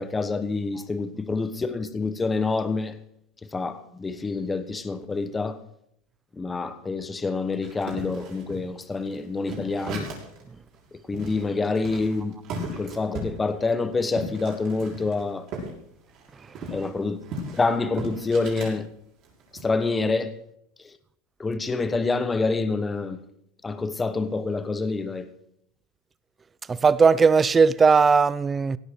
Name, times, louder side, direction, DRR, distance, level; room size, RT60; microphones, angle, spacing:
voice 1, 0.0-3.0 3.5-5.6 6.4-10.1 11.1-12.4 12.8-15.4 16.7-17.2 17.5-18.9 19.6-20.3 21.4-23.2 23.6-25.3, left 3 dB, 15° left, 1.2 m, -27 dB
sound 1, 7.6-10.4 10.8-10.9 11.1-15.7 16.0-18.8 19.2-19.6, right 1 dB, 45° right, 6.4 m, -37 dB
voice 2, 26.7-28.8, right 5 dB, 15° right, 0.6 m, -18 dB
17.0 x 12.5 x 4.7 m
supercardioid pair, 140°, 0 cm